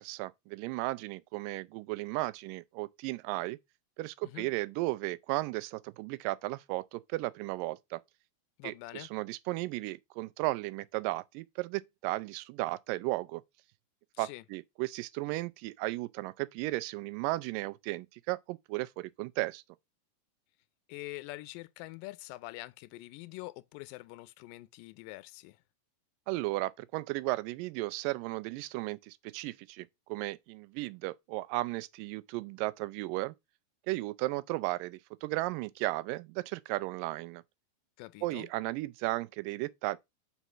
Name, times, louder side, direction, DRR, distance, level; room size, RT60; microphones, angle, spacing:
voice 1, 0.0-3.6 4.0-8.0 8.6-13.4 14.2-19.6 26.3-33.3 33.9-37.4 38.2-40.0, right 20 dB, 80° right, 2.1 m, -35 dB
voice 2, 8.6-9.1 14.1-14.4 20.9-25.6 38.0-38.5, left 20 dB, 80° left, 2.1 m, -45 dB
5.6 x 4.1 x 6.0 m
omnidirectional pair, 4.2 m